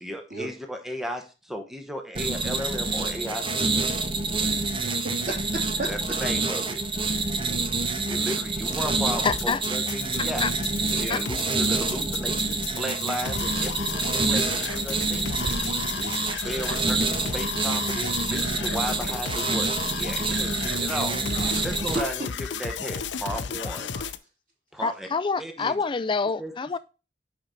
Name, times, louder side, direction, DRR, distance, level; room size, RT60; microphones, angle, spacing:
voice 1, 0.0-3.9 5.9-6.8 8.1-10.4 10.9-14.4 14.7-15.3 16.4-21.2 21.6-24.0 24.7-25.1 25.4-25.8 26.4-26.5, equal, ahead, 0.9 m, -35 dB
sound 1, 2.2-22.0, right 3 dB, 30° right, 0.7 m, -27 dB
voice 2, 4.6-5.9 11.0-11.2 15.8-16.1 20.6-20.8 21.1-21.5 21.9-22.3 23.9-24.1, right 1 dB, 50° right, 2.8 m, -35 dB
sound 2, 6.0-6.4 7.0-7.1 8.5-9.1 13.2-13.6 14.3-14.7 15.3-15.6, right 2 dB, 85° right, 0.9 m, -40 dB
voice 3, 9.2-9.6 10.4-10.5 11.1-11.2 24.8-26.8, left 4 dB, 25° left, 0.4 m, -26 dB
sound 3, 9.3-24.2, left 7 dB, 75° left, 0.5 m, -34 dB
5.8 x 5.2 x 4.2 m
head